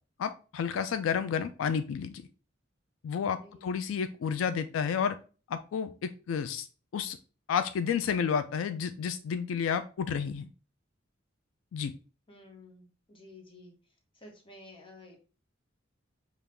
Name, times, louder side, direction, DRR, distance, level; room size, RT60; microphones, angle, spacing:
voice 1, 0.2-2.2 3.0-5.2 5.5-6.7 6.9-7.2 7.5-10.5 11.7-11.9, left 7 dB, 90° left, 10 dB, 0.3 m, -31 dB
voice 2, 12.3-13.7 14.2-15.2, left 2 dB, 25° left, 1 dB, 1.1 m, -52 dB
5.2 x 2.3 x 3.3 m, 0.36 s
head